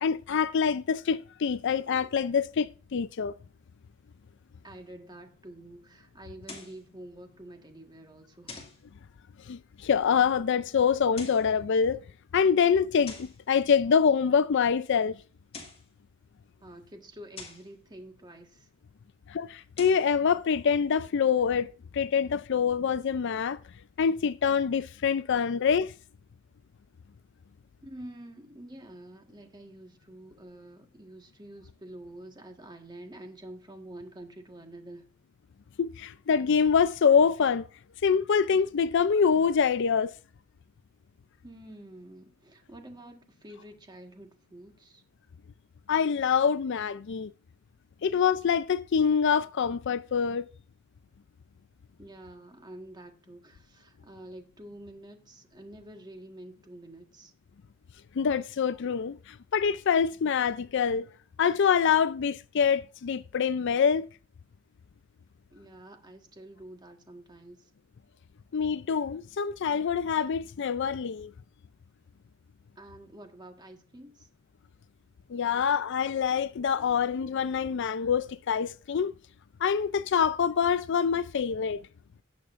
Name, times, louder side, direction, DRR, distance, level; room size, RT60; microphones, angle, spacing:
voice 1, 0.0-3.3 9.5-12.0 12.3-15.2 19.3-23.6 24.0-25.9 35.8-37.6 38.0-40.1 45.9-47.3 48.0-50.5 58.2-61.1 61.4-64.1 68.5-71.3 75.3-79.1 79.6-81.8, left 6 dB, 60° left, 0.4 m, -25 dB
voice 2, 4.6-8.6 16.6-18.7 27.8-35.1 41.4-45.0 52.0-57.3 65.5-67.7 72.7-74.3, right 1 dB, 20° right, 1.6 m, -48 dB
sound 1, 6.4-6.8 8.5-8.8 11.0-11.5 13.1-13.4 15.3-15.9 17.4-17.7 19.6-20.1, left 4 dB, 30° left, 2.2 m, -45 dB
18.0 x 7.0 x 2.6 m
head